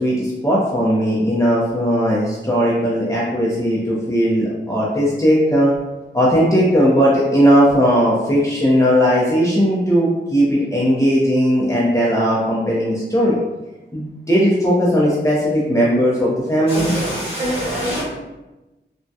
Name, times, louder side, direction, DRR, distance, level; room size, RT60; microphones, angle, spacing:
voice 1, 0.0-5.7 6.1-13.4 13.9-16.9, equal, 15° left, 0.5 m, -17 dB
voice 2, 16.7-18.0, right 1 dB, 30° right, 1.5 m, -24 dB
3.4 x 2.1 x 2.6 m
wide cardioid pair, 105°, 19 cm